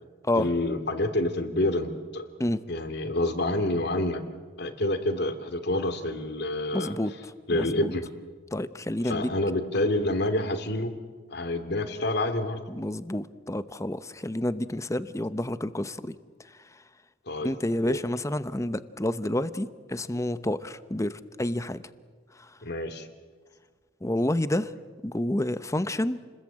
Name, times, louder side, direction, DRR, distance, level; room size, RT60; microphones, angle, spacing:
voice 1, 0.3-2.3 2.7-4.2 4.6-7.0 7.5-8.0 9.0-10.9 11.3-12.6 17.3-17.5 17.9-18.0 22.6-23.1, left 1 dB, 60° left, 9 dB, 2.5 m, -28 dB
voice 2, 6.7-7.1 7.5-7.9 8.5-9.3 12.7-16.2 17.4-21.8 24.0-24.7 25.0-26.2, left 1 dB, 15° left, 13 dB, 0.9 m, -29 dB
29.5 x 21.0 x 8.9 m, 1.5 s
head